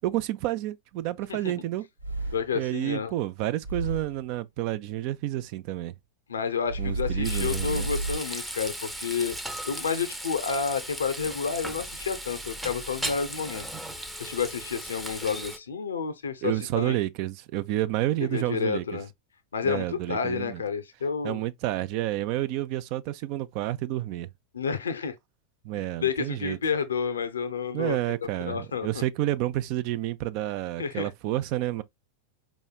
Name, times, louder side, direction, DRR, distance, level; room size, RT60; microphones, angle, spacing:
voice 1, 0.0-1.9 2.5-5.9 6.8-7.9 16.4-18.8 19.6-20.6 21.2-24.3 25.6-26.6 27.7-31.8, right 14 dB, 45° right, 0.4 m, -30 dB
sound 1, 2.0-2.7 3.6-4.3 6.7-8.2, right 2 dB, 90° right, 0.8 m, -31 dB
voice 2, 2.3-3.1 6.3-9.4 9.6-13.7 14.2-17.0 18.3-19.1 19.5-21.4 24.5-25.1 26.0-28.0 28.4-28.9 30.8-31.1, left 6 dB, 70° left, 0.6 m, -30 dB
Frying (food), 7.2-15.6, equal, ahead, 0.6 m, -37 dB
4.7 x 3.0 x 2.3 m
figure-of-eight pair, 90°, 0 cm